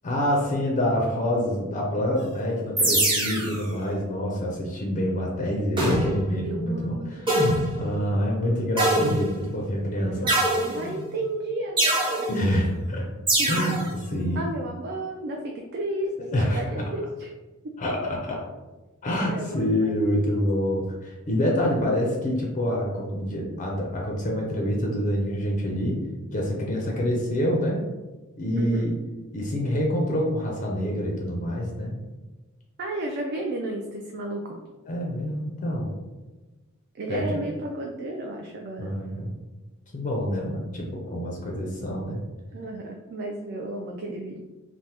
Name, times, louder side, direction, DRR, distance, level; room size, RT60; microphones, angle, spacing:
voice 1, 0.0-7.3 7.7-10.3 12.3-13.1 13.5-13.8 14.1-14.4 16.3-16.9 17.8-18.4 19.0-26.0 26.3-27.9 28.4-28.9 29.3-31.9 34.9-35.9 37.1-37.4 38.8-39.3 39.9-42.2, equal, 35° left, -1 dB, 0.4 m, -26 dB
sound 1, 2.8-3.6 5.8-6.3 7.3-7.8 8.8-9.5 10.3-11.0 11.8-12.3 13.3-13.8, right 1 dB, 25° right, 0.7 m, -23 dB
voice 2, 3.2-3.8 6.4-7.8 9.9-12.3 13.4-13.7 14.4-17.3 17.6-17.7 19.3-20.0 28.6-28.9 32.8-34.6 36.9-38.9 42.5-44.4, right 1 dB, 50° right, 1 dB, 0.3 m, -33 dB
3.3 x 2.0 x 2.8 m, 1.2 s
head